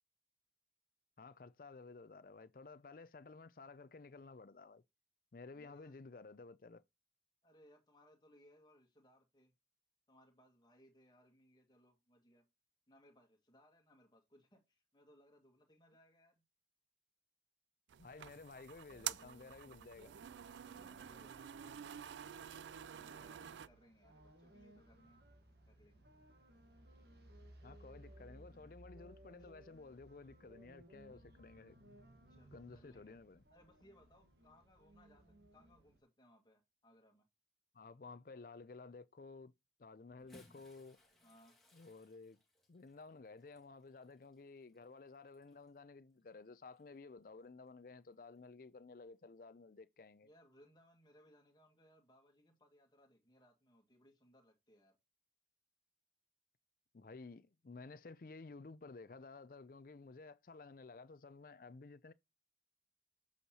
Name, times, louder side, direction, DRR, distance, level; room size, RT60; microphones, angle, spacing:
voice 1, 1.2-4.8 5.3-6.8 18.0-20.1 27.6-31.8 32.5-33.4 37.7-39.5 39.8-41.0 41.7-42.4 42.7-50.3 56.9-62.1, left 3 dB, 50° left, 0.5 m, -54 dB
voice 2, 5.5-5.9 7.4-9.5 10.1-12.5 12.9-16.4 20.6-21.7 22.3-22.5 22.8-25.2 25.7-26.1 29.4-29.5 32.3-33.2 33.5-37.3 40.2-40.4 41.2-41.6 50.2-55.0, equal, 25° left, 1.9 m, -67 dB
sound 1, 17.9-23.7, right 10 dB, 90° right, 0.4 m, -48 dB
sound 2, 18.9-36.0, right 1 dB, 70° right, 1.5 m, -62 dB
Bathtub (filling or washing) / Splash splatter, 40.1-45.8 46.7-46.8 48.3-48.4, left 1 dB, ahead, 2.2 m, -68 dB
8.1 x 6.4 x 2.9 m
head